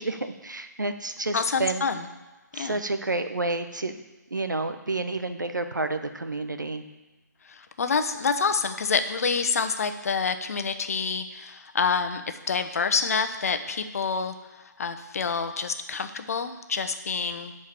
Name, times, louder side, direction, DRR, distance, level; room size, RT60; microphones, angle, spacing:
voice 1, 0.0-1.9 2.5-4.0 4.3-6.8, right 2 dB, 80° right, 8 dB, 1.0 m, -30 dB
voice 2, 1.3-2.1 2.5-2.8 7.5-17.5, left 5 dB, 50° left, 8 dB, 0.9 m, -27 dB
10.5 x 4.7 x 7.6 m, 1.1 s
figure-of-eight pair, 140°, 10 cm